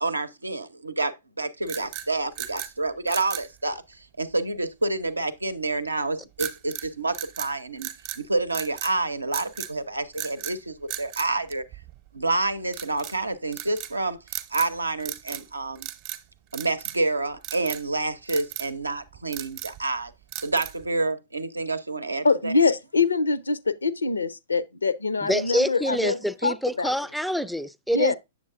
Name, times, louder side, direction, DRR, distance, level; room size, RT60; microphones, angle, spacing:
voice 1, 0.0-7.9 8.2-11.6 12.1-14.2 14.5-15.9 16.5-20.1 20.4-22.5, right 2 dB, 90° right, 0.6 m, -28 dB
sound 1, 1.6-2.7 3.1-3.5 6.4-6.9 7.1-8.2 8.5-9.0 9.3-9.7 10.1-10.6 10.9-12.1 12.7-13.2 13.5-13.9 14.3-14.7 15.0-15.5 15.8-16.2 16.5-17.1 17.4-17.8 18.3-18.7 19.1-19.8 20.3-20.9, right 13 dB, 40° right, 0.7 m, -36 dB
voice 2, 22.2-26.9 27.9-28.2, left 4 dB, 80° left, 0.5 m, -24 dB
voice 3, 25.2-28.2, equal, ahead, 0.3 m, -26 dB
7.3 x 7.1 x 2.4 m
figure-of-eight pair, 110°, 0 cm